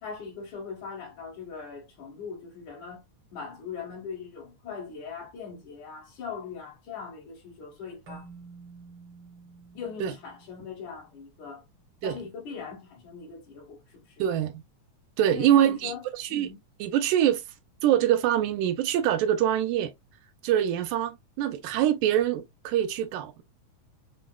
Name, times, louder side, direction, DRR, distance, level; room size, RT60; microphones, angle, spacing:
voice 1, 0.0-3.0 3.3-8.3 9.7-11.6 12.0-14.3 15.3-16.0 16.3-16.6, left 6 dB, 75° left, 3.1 m, -40 dB
Keyboard (musical), 8.1-11.3, right 5 dB, 65° right, 1.3 m, -50 dB
voice 2, 14.2-14.6 15.2-16.5 16.8-17.4 17.8-19.9 20.4-23.4, right 11 dB, 85° right, 2.0 m, -24 dB
5.9 x 2.1 x 2.2 m
omnidirectional pair, 3.5 m